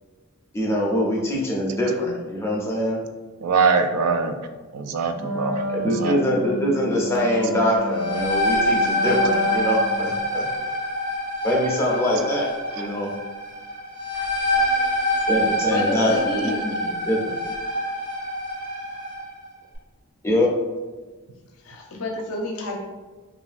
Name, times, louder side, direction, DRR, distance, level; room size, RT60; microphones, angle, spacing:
voice 1, 0.5-3.0 5.7-10.4 11.4-13.1 15.3-16.5 17.1-17.4 20.2-20.5, equal, 10° left, -3 dB, 0.4 m, -23 dB
voice 2, 3.4-4.3 4.7-5.6 6.0-6.2, right 5 dB, 85° right, 7 dB, 0.3 m, -22 dB
Wind instrument woodwind instrument, 5.1-10.3, equal, 65° right, 0.9 m, -30 dB
sound 1, 7.8-19.3, equal, 35° right, 0.6 m, -25 dB
voice 3, 15.6-16.7 21.6-22.8, left 2 dB, 75° left, 2 dB, 0.5 m, -29 dB
3.0 x 2.5 x 2.4 m, 1.3 s
head